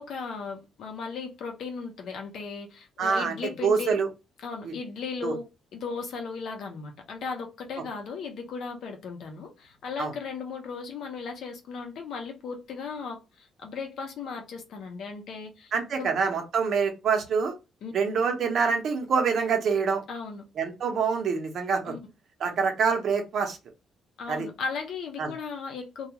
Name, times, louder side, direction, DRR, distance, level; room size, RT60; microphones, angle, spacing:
voice 1, 0.0-4.0 4.4-5.5 5.7-15.7 16.0-16.1 17.8-17.9 20.1-20.4 21.8-22.0 24.2-26.1, left 5 dB, 70° left, 0.8 m, -36 dB
voice 2, 3.0-3.4 3.6-4.1 4.6-4.7 5.2-5.3 10.0-10.1 15.7-17.5 17.9-20.0 20.6-21.9 22.4-23.6 24.3-24.5 25.2-25.3, right 5 dB, 65° right, 0.8 m, -26 dB
2.3 x 2.3 x 2.9 m
cardioid pair, 90°, 0 cm